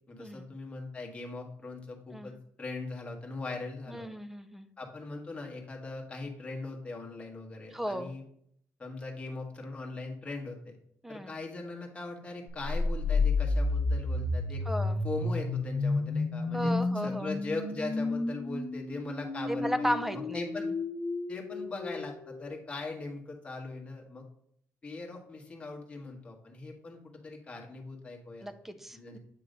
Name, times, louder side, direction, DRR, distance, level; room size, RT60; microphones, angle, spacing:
voice 1, 0.1-4.1 4.8-8.2 8.8-10.7 11.1-14.6 15.0-20.7 21.3-24.2 24.8-28.5 28.9-29.2, left 3 dB, 20° left, 0 dB, 1.2 m, -40 dB
voice 2, 3.9-4.7 7.7-8.1 11.0-11.3 14.7-15.0 16.5-17.3 19.5-20.5 28.4-29.2, equal, 5° right, 10 dB, 0.4 m, -35 dB
sound 1, 12.7-22.5, left 3 dB, 45° left, 1.2 m, -31 dB
7.7 x 3.0 x 5.0 m, 0.69 s
cardioid pair, 155°, 6 cm